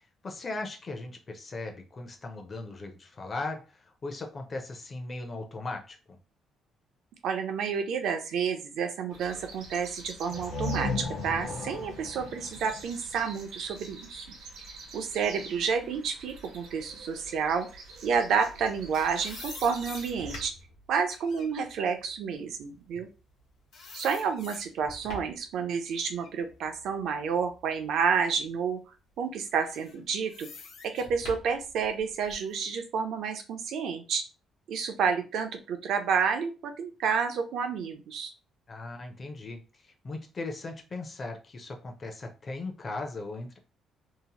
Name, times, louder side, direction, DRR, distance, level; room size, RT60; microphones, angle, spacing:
voice 1, 0.0-6.2 38.7-43.6, left 2 dB, 25° left, 3 dB, 0.5 m, -38 dB
voice 2, 7.2-14.3 14.9-17.7 18.0-20.5 20.9-23.1 23.9-28.8 29.2-30.5 30.8-34.2 34.7-38.3, right 6 dB, 65° right, 6 dB, 0.5 m, -30 dB
sound 1, 9.1-20.5, right 3 dB, 80° right, 0.9 m, -47 dB
sound 2, 10.3-14.0, left 2 dB, 55° left, 0.8 m, -36 dB
sound 3, 18.6-23.4 23.7-25.5 25.9-27.9 28.4-28.5 29.5-32.5, left 2 dB, 80° left, 0.9 m, -46 dB
2.8 x 2.0 x 2.8 m, 0.31 s
cardioid pair, 170°, 0 cm